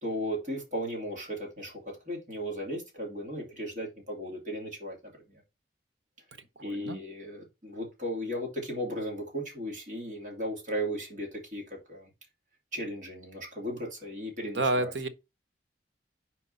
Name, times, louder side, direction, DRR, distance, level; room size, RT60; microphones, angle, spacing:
voice 1, 0.0-5.0 5.3-5.4 6.6-12.1 12.7-14.9, equal, 45° right, 2.7 m, -36 dB
voice 2, 6.6-7.0 14.4-15.1, right 2 dB, 85° right, 1.0 m, -30 dB
4.7 x 4.5 x 5.5 m
head